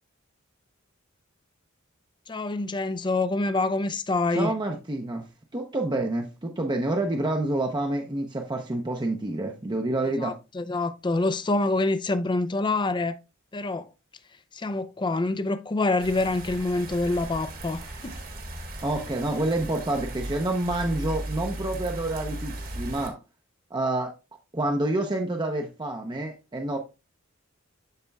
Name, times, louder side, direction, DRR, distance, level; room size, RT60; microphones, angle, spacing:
voice 1, 2.3-4.5 10.2-13.2 13.5-13.9 14.5-18.1, left 2 dB, 20° left, 0.5 m, -26 dB
voice 2, 4.3-5.3 5.5-10.4 18.8-23.2 23.7-24.1 24.5-26.8, right 2 dB, 20° right, 0.7 m, -28 dB
sound 1, 16.0-23.1, right 1 dB, 45° right, 1.4 m, -37 dB
12.0 x 4.3 x 2.3 m
head